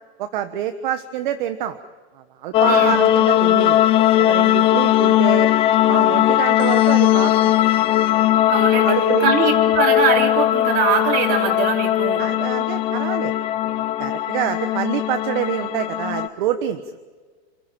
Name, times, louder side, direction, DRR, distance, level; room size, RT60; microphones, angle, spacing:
voice 1, 0.2-1.8 2.4-3.9 4.2-5.5 5.9-7.5 8.8-9.4 12.2-13.3 13.6-16.8, right 11 dB, 50° right, 9 dB, 1.3 m, -26 dB
sound 1, 2.5-16.3, left 13 dB, 20° left, 0.6 m, -18 dB
voice 2, 8.5-12.3, right 5 dB, 30° right, 2 dB, 3.8 m, -22 dB
29.0 x 14.5 x 8.9 m, 1.5 s
supercardioid pair, 165°, 32 cm